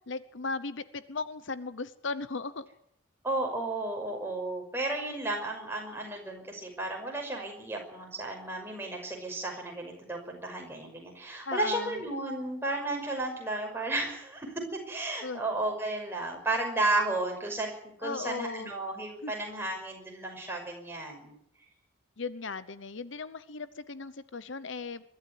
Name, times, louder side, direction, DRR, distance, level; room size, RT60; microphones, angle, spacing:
voice 1, 0.1-2.7 11.5-12.0 15.2-15.4 18.0-18.7 19.2-19.3 22.2-25.1, left 4 dB, 65° left, 15 dB, 0.9 m, -37 dB
voice 2, 3.2-21.4, right 2 dB, 10° right, 1 dB, 5.7 m, -33 dB
22.5 x 13.0 x 9.4 m, 0.72 s
head